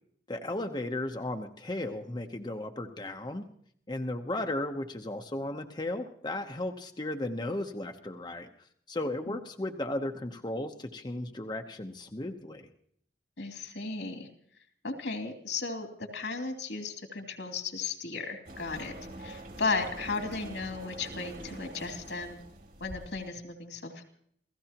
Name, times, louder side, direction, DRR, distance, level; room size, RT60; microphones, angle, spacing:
voice 1, 0.3-3.5 3.9-8.5 8.9-12.7, left 1 dB, 25° left, 4 dB, 0.9 m, -35 dB
voice 2, 13.4-14.3 14.8-15.9 16.1-18.9 19.2-22.4 22.8-24.0, left 4 dB, 85° left, 3 dB, 2.9 m, -35 dB
sound 1, 18.5-23.3, right 1 dB, 55° right, 3.3 m, -45 dB
29.0 x 16.0 x 2.9 m, 0.65 s
head